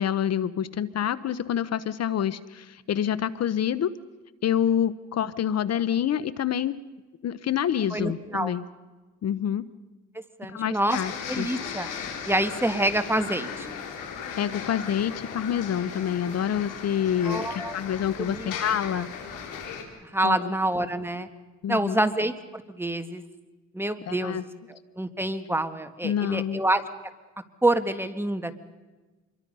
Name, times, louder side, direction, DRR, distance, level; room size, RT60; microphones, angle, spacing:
voice 1, 0.0-3.9 4.4-6.8 7.2-8.6 9.2-9.6 10.5-11.1 11.4-11.5 14.4-19.1 20.2-20.5 21.6-22.0 24.1-24.4 26.0-26.6, left 9 dB, 55° left, 16 dB, 0.9 m, -27 dB
voice 2, 7.9-8.5 10.4-11.0 11.3-11.9 12.3-13.7 17.2-17.7 18.2-18.5 18.9-19.0 20.0-21.3 21.7-23.2 23.7-26.8 27.6-28.6, right 1 dB, 10° right, 8 dB, 1.6 m, -27 dB
sound 1, 10.9-19.8, left 6 dB, 90° left, 4.0 m, -37 dB
26.5 x 22.5 x 5.5 m, 1.2 s
cardioid pair, 90°, 30 cm